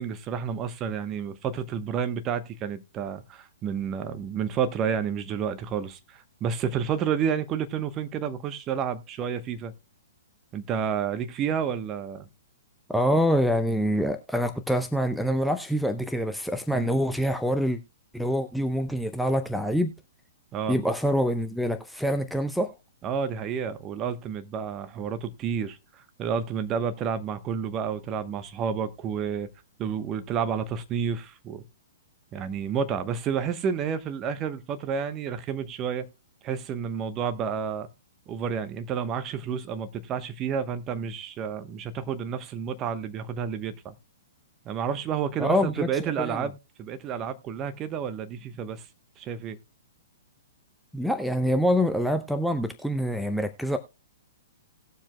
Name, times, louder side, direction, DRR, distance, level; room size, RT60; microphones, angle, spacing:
voice 1, 0.0-9.7 10.5-12.3 16.7-16.9 20.5-20.8 23.0-29.5 29.8-31.6 32.3-36.1 36.4-37.9 38.3-43.9 44.6-48.8 49.2-49.6, right 7 dB, 25° right, 1.0 m, -30 dB
voice 2, 12.9-17.8 18.1-19.9 20.7-22.7 45.4-45.9 46.2-46.5 50.9-53.8, equal, ahead, 0.6 m, -25 dB
18.5 x 7.3 x 2.2 m
figure-of-eight pair, 115°, 0 cm